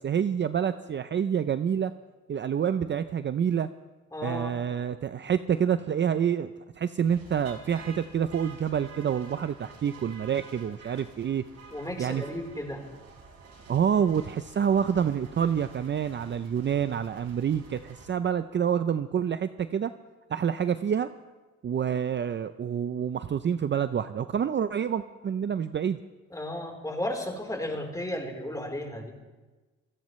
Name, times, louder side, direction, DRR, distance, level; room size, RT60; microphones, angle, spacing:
voice 1, 0.0-1.9 2.3-3.7 4.2-11.4 12.0-12.4 13.7-19.9 20.3-21.1 21.6-26.0, right 8 dB, 40° right, 11 dB, 0.6 m, -27 dB
voice 2, 4.1-4.6 11.7-12.8 26.3-29.1, left 1 dB, 10° left, 1 dB, 3.9 m, -34 dB
sound 1, 7.0-18.1, right 4 dB, 60° right, 4.3 m, -49 dB
26.5 x 16.5 x 3.2 m, 1.2 s
cardioid pair, 90°, 30 cm